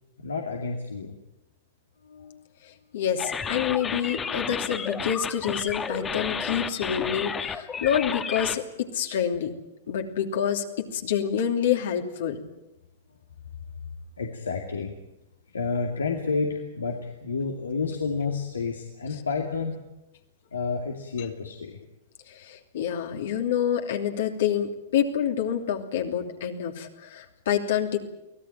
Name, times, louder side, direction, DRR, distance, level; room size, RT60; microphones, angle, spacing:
voice 1, 0.2-1.2 2.0-2.4 14.2-14.9 15.5-19.8 20.5-21.8, left 4 dB, 85° left, 2 dB, 2.4 m, -30 dB
voice 2, 2.9-8.6 8.9-9.5 9.9-10.6 10.9-12.4 22.5-28.0, left 9 dB, 65° left, 3 dB, 3.0 m, -27 dB
alien radio, 3.2-8.6, left 6 dB, 20° left, 1.6 m, -32 dB
24.0 x 17.0 x 9.0 m, 0.95 s
hypercardioid pair, 110°, 0 cm